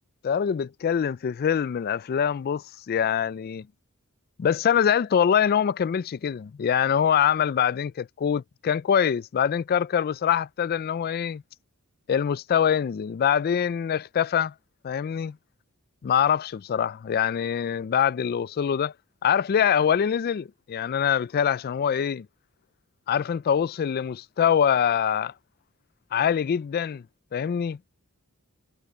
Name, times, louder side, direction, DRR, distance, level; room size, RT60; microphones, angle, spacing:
voice 1, 0.2-3.7 4.4-11.4 12.1-14.5 14.8-15.3 16.0-18.9 19.2-22.3 23.1-25.3 26.1-27.0 27.3-27.8, left 8 dB, 45° left, 0.3 m, -24 dB
head